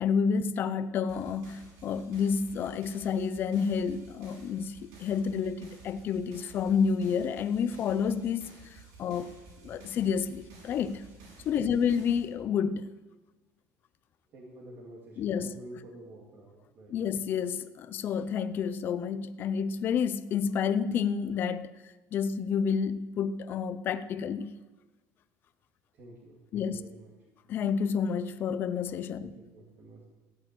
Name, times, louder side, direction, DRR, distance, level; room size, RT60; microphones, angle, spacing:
voice 1, 0.0-9.3 9.6-11.1 11.4-12.9 15.2-15.5 16.9-21.7 22.1-24.6 26.5-26.8 27.5-29.3, left 6 dB, 35° left, 0.5 m, -29 dB
sound 1, 1.1-12.2, right 3 dB, 80° right, 6.9 m, -53 dB
voice 2, 14.3-17.1 25.9-27.1 29.2-30.0, right 1 dB, 40° right, 2.6 m, -49 dB
15.0 x 8.8 x 9.1 m
cardioid pair, 175°, 6 cm